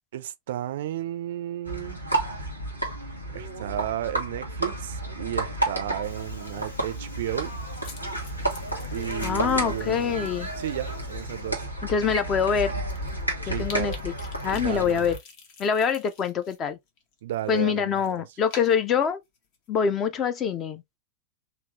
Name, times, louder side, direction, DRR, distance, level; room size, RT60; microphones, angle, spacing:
voice 1, 0.1-2.0 3.3-7.5 8.9-11.7 13.4-14.0 14.5-15.1 17.2-18.0, right 13 dB, 55° right, 0.4 m, -33 dB
sound 1, 1.6-15.2, right 1 dB, 90° left, 1.3 m, -32 dB
Subway metro underground, 5.4-14.1, left 3 dB, 70° left, 1.0 m, -46 dB
sound 2, 7.8-10.3 10.7-10.9 11.6-11.7 12.1-12.2 12.4-16.6 16.9-19.7, left 4 dB, 45° left, 1.0 m, -47 dB
voice 2, 9.2-10.5 11.9-12.7 13.5-14.1 14.4-15.2 15.6-16.8 17.5-19.2 19.7-20.8, left 7 dB, 30° left, 0.6 m, -25 dB
3.5 x 2.5 x 3.1 m
figure-of-eight pair, 90°, 0 cm